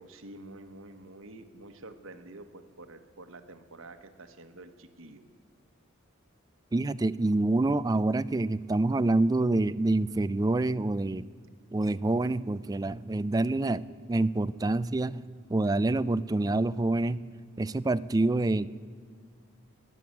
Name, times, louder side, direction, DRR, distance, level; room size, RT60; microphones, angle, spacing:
voice 1, 0.0-5.2, right 2 dB, 80° right, 8 dB, 1.3 m, -48 dB
voice 2, 6.7-11.3 11.7-17.2 17.6-18.7, right 2 dB, 20° right, 16 dB, 0.3 m, -27 dB
19.0 x 7.7 x 8.4 m, 2.1 s
head